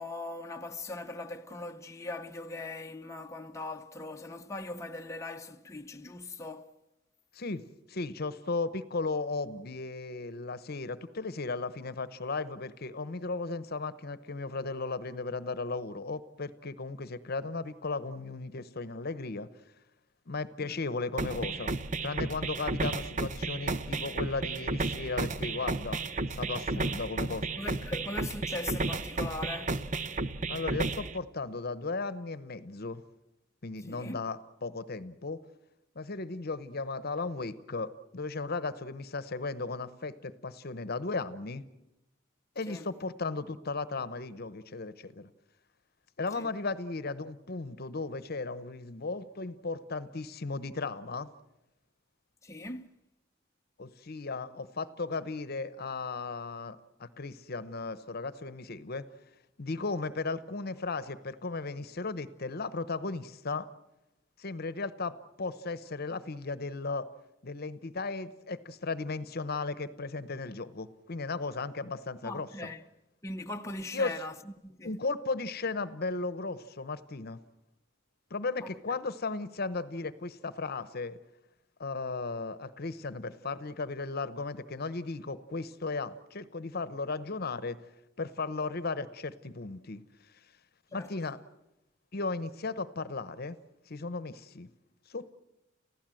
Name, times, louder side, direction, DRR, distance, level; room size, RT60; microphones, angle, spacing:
voice 1, 0.0-6.7 20.6-20.8 26.7-26.9 27.6-29.8 33.9-34.2 42.7-42.8 46.3-46.5 52.4-52.9 72.2-72.8 73.2-74.9 78.6-78.8 90.9-91.3, left 2 dB, 15° left, 0.8 m, -40 dB
voice 2, 7.3-19.5 20.3-21.8 22.0-26.0 26.4-27.5 30.5-33.0 33.6-35.4 35.9-41.6 42.6-45.3 46.2-51.3 53.8-59.0 59.6-63.7 64.4-67.0 67.4-72.7 73.9-74.1 74.8-77.4 78.3-81.2 81.8-87.8 88.2-90.0 90.9-91.4 92.1-93.6 93.9-94.7 95.1-95.3, left 3 dB, 55° left, 0.9 m, -36 dB
sound 1, 21.2-31.2, right 3 dB, 40° right, 0.8 m, -33 dB
30.0 x 16.0 x 7.7 m
head